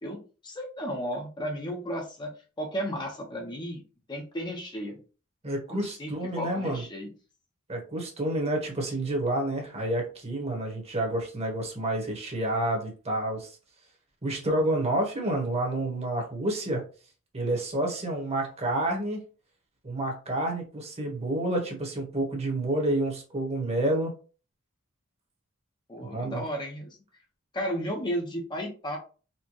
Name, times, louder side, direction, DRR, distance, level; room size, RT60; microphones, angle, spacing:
voice 1, 0.0-2.3 2.6-3.8 4.1-5.0 5.7-6.1 6.4-7.1 25.9-27.0 27.5-29.0, equal, 20° left, 0 dB, 0.6 m, -34 dB
voice 2, 5.4-6.8 7.7-13.6 14.2-16.8 17.3-19.2 19.8-24.1 26.1-26.4, right 1 dB, 30° right, 1 dB, 1.0 m, -29 dB
4.3 x 2.1 x 2.9 m, 0.36 s
head